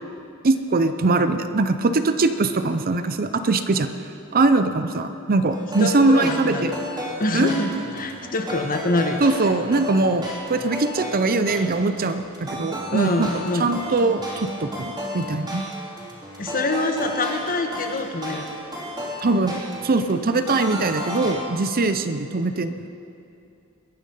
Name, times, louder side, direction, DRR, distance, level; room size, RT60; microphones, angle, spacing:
voice 1, 0.4-3.9 4.3-6.7 7.3-7.5 9.2-13.3 13.6-15.6 19.2-22.8, right 3 dB, 40° right, 9 dB, 0.6 m, -22 dB
sound 1, 5.5-21.3, equal, 20° right, 3.4 m, -34 dB
voice 2, 5.8-6.8 7.2-9.2 12.9-13.7 16.4-18.6 20.8-20.9, left 2 dB, 40° left, 4 dB, 1.4 m, -25 dB
21.5 x 10.0 x 5.6 m, 2.7 s
head